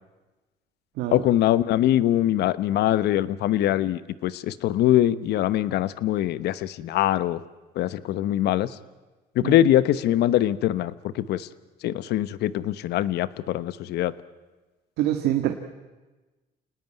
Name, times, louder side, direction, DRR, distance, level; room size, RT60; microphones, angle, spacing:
voice 1, 1.1-7.4 7.8-8.7 9.3-11.5 11.8-14.1, left 12 dB, 75° left, 15 dB, 1.1 m, -23 dB
voice 2, 15.0-15.5, right 12 dB, 85° right, 5 dB, 1.8 m, -25 dB
28.0 x 19.0 x 9.2 m, 1.2 s
cardioid pair, 110°, 17 cm